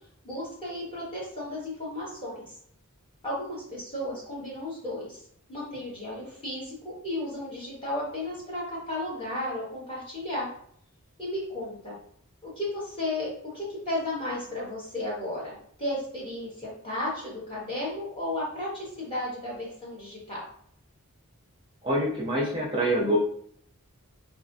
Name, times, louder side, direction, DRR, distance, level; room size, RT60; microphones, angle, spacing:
voice 1, 0.2-2.5 3.2-5.2 5.5-10.5 11.2-11.9 12.4-20.4, left 1 dB, 25° left, -7 dB, 1.5 m, -34 dB
voice 2, 21.8-23.2, right 1 dB, 25° right, -4 dB, 0.6 m, -25 dB
3.3 x 2.7 x 2.7 m, 0.64 s
head